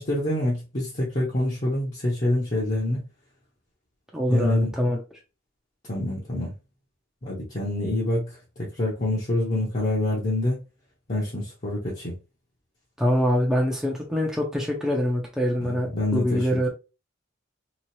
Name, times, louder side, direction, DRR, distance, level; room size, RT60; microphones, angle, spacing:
voice 1, 0.0-3.0 4.3-4.7 5.9-6.5 7.2-8.3 8.6-10.6 11.1-12.1 15.6-16.7, left 1 dB, 40° left, 0.9 m, -26 dB
voice 2, 4.1-5.0 13.0-16.7, equal, 5° right, 0.6 m, -24 dB
3.0 x 2.4 x 2.7 m
head